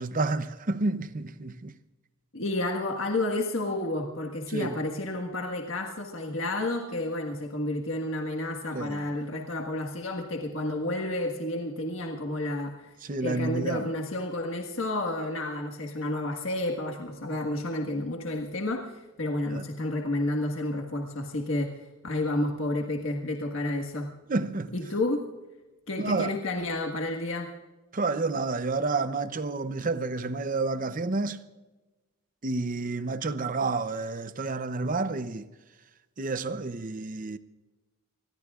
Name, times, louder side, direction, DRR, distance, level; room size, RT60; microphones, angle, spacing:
voice 1, 0.0-1.7 4.5-4.8 8.7-9.0 13.0-13.9 19.5-19.6 24.3-24.7 26.0-26.3 27.9-31.4 32.4-35.5 36.2-37.4, right 3 dB, 40° right, 0.7 m, -30 dB
voice 2, 2.3-12.9 13.2-21.7 22.0-24.1 24.7-25.2 25.9-27.5, left 2 dB, 60° left, 1.6 m, -30 dB
26.0 x 21.0 x 2.4 m
head